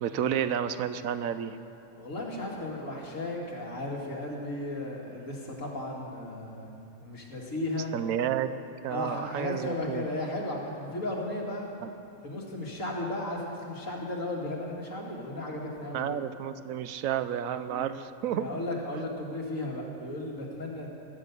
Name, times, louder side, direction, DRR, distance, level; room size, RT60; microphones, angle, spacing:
voice 1, 0.0-1.6 7.9-10.1 11.8-11.9 15.9-18.5 18.9-19.0, right 9 dB, 80° right, 12 dB, 1.0 m, -31 dB
voice 2, 2.0-6.7 7.0-7.9 8.9-11.7 12.2-16.1 17.7-17.9 18.4-20.9, left 1 dB, 70° left, -2 dB, 2.4 m, -35 dB
16.0 x 7.0 x 8.2 m, 2.6 s
omnidirectional pair, 1.4 m